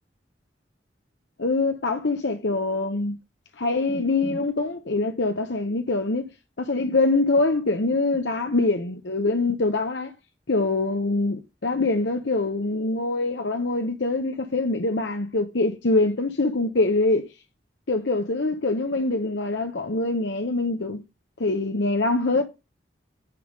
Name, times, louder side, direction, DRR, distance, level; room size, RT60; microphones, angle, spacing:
voice 1, 1.4-3.2 3.6-6.3 6.6-10.1 10.5-17.3 17.9-21.0 21.4-22.4, left 2 dB, 75° left, 1.0 m, -24 dB
10.0 x 3.6 x 6.5 m
head